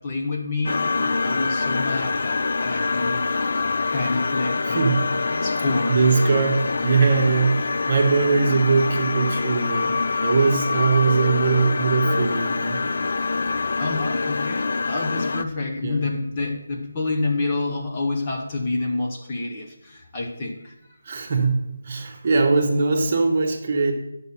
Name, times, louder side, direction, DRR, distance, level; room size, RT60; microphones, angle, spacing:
voice 1, 0.0-3.3 3.9-5.0 5.4-6.0 7.0-7.1 13.8-20.7, left 3 dB, 20° left, 0 dB, 0.7 m, -28 dB
sound 1, 0.6-15.4, left 4 dB, 50° left, 0.3 m, -25 dB
voice 2, 4.6-5.1 5.9-12.8 15.8-16.0 21.0-23.9, right 4 dB, 35° right, 3 dB, 1.0 m, -21 dB
7.9 x 5.5 x 5.6 m, 0.91 s
figure-of-eight pair, 175°, 0 cm